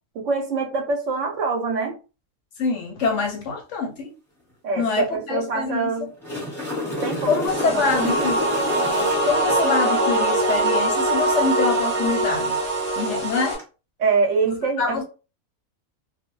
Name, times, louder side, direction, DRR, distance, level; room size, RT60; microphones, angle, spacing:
voice 1, 0.1-2.0 4.6-6.1 6.8-8.2 14.0-15.0, right 4 dB, 70° right, 0.9 m, -25 dB
voice 2, 2.6-4.1 4.8-5.8 7.3-8.6 9.2-12.6 13.0-13.6 14.4-15.0, left 5 dB, 65° left, 0.8 m, -25 dB
sound 1, 6.0-9.6 13.4-13.6, left 2 dB, ahead, 1.0 m, -29 dB
sound 2, 7.5-13.5, right 2 dB, 40° right, 0.6 m, -22 dB
2.3 x 2.2 x 3.0 m
omnidirectional pair, 1.5 m